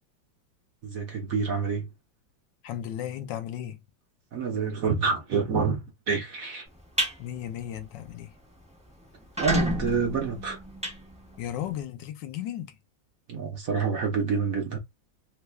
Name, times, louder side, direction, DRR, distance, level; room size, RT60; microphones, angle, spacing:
voice 1, 0.8-1.9 4.3-6.7 9.4-10.6 13.3-14.8, right 5 dB, 55° right, 1.1 m, -27 dB
voice 2, 2.6-3.8 7.2-8.3 11.4-12.8, left 11 dB, 75° left, 1.3 m, -35 dB
sound 1, 6.7-7.1 7.6-7.8 8.2-8.3 8.5-8.6 9.1-11.7, equal, 5° right, 0.5 m, -29 dB
3.3 x 3.3 x 2.2 m
omnidirectional pair, 2.0 m